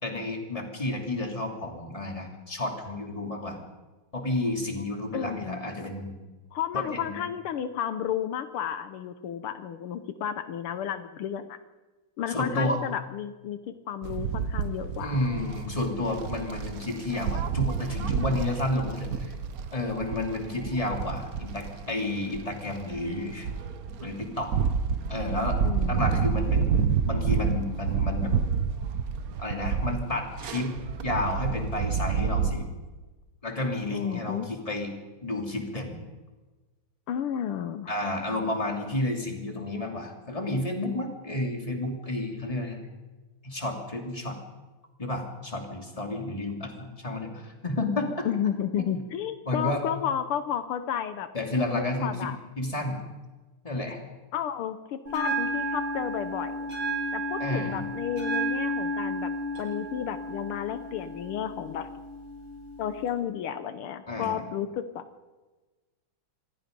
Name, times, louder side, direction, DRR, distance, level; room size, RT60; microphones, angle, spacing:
voice 1, 0.0-3.6 4.1-6.1 6.7-7.2 12.3-12.8 15.0-19.4 19.7-23.5 24.0-24.5 25.1-25.6 25.9-28.3 29.4-30.7 31.0-32.7 33.4-34.9 35.2-36.0 37.9-42.8 43.4-44.4 45.0-48.3 48.8-48.9 49.5-49.8 51.3-52.3 52.6-53.0 53.6-54.0 57.4-57.8 64.1-64.4, left 2 dB, 15° left, 2 dB, 3.0 m, -31 dB
voice 2, 5.1-5.7 6.5-11.6 12.2-13.6 13.9-15.3 25.6-26.2 33.9-34.5 37.1-37.9 48.3-51.3 51.6-52.4 54.3-56.7 57.1-59.3 59.6-61.9 62.8-65.1, left 9 dB, 80° left, 10 dB, 1.8 m, -32 dB
sound 1, 14.0-32.5, right 6 dB, 55° right, 1.2 m, -29 dB
Bell, 55.1-63.1, right 1 dB, 70° right, 8.6 m, -32 dB
26.5 x 20.5 x 5.3 m, 1.2 s
omnidirectional pair, 2.4 m